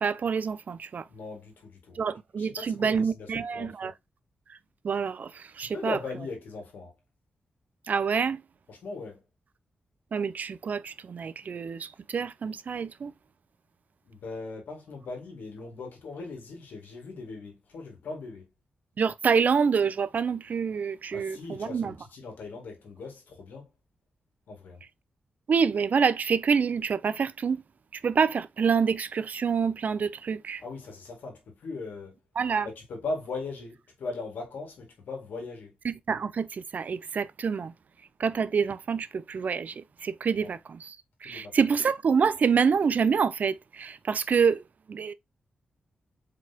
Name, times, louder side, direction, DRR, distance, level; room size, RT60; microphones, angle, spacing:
voice 1, 0.0-1.0 1.9-3.9 4.5-4.6 4.8-6.0 7.9-8.4 10.1-13.1 19.0-21.9 25.5-27.6 28.0-30.6 32.4-32.7 35.8-37.7 38.2-41.0 41.2-45.1, right 6 dB, 60° right, 0.5 m, -27 dB
voice 2, 1.1-2.0 2.4-3.9 5.6-6.9 8.7-9.2 14.0-18.5 21.1-23.7 24.5-24.8 30.6-32.2 32.6-35.8 40.3-40.5 41.2-41.6, left 3 dB, 80° left, 2.1 m, -39 dB
4.7 x 4.0 x 2.8 m
cardioid pair, 65°, 3 cm